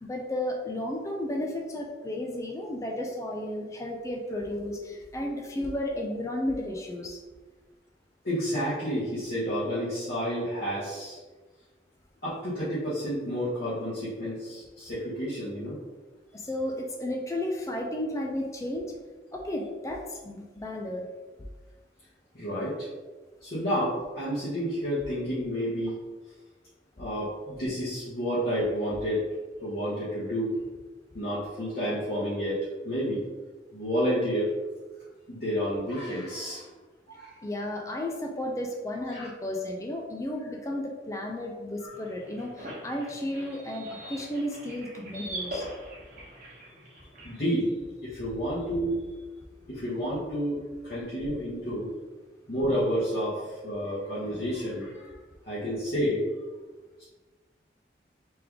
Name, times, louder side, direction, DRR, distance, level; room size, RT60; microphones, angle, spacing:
voice 1, 0.0-7.2 16.3-19.0 19.3-21.0 37.4-45.7, left 1 dB, 20° left, 1 dB, 0.4 m, -33 dB
voice 2, 8.2-11.2 12.2-15.8 17.0-17.1 22.3-22.9 23.4-25.9 27.0-29.2 29.6-30.5 31.1-33.2 33.7-34.5 35.3-36.7 37.1-37.4 39.1-39.3 41.8-41.9 47.2-47.8 48.0-49.0 49.7-51.9 52.5-55.1 55.4-56.3 57.0-57.1, equal, 60° left, -12 dB, 1.3 m, -30 dB
sound 1, 41.9-47.4, right 1 dB, 45° right, 1.0 m, -42 dB
3.4 x 3.3 x 3.5 m, 1.3 s
head